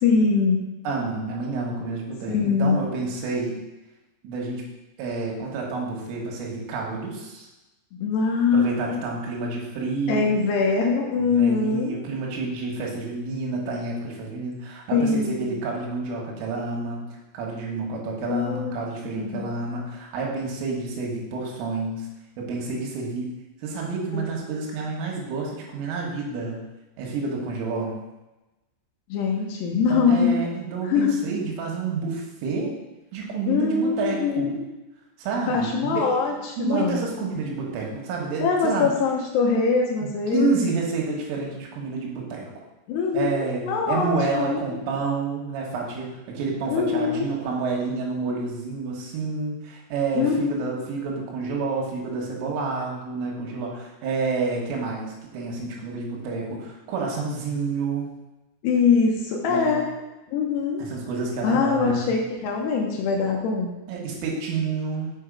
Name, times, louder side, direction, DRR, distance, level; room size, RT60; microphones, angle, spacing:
voice 1, 0.0-0.7 2.3-2.9 7.9-9.0 10.1-12.0 14.9-15.6 18.3-18.8 19.1-19.5 24.1-24.4 29.1-30.3 30.9-31.2 33.5-34.6 35.5-37.0 38.4-40.7 42.9-44.6 46.7-47.3 50.2-50.7 58.6-59.9 60.3-60.8 61.4-63.7, left 5 dB, 75° left, 1 dB, 2.6 m, -23 dB
voice 2, 0.9-3.6 4.2-4.6 5.0-7.5 8.5-10.3 11.1-17.0 17.3-22.1 22.4-23.3 23.6-26.6 27.0-28.0 29.7-32.7 33.1-34.5 35.2-36.2 36.6-38.9 40.0-42.5 43.1-58.1 59.5-59.8 60.8-62.1 63.9-65.1, right 4 dB, 90° right, -2 dB, 4.0 m, -29 dB
7.8 x 5.3 x 5.2 m, 1.0 s
omnidirectional pair, 5.6 m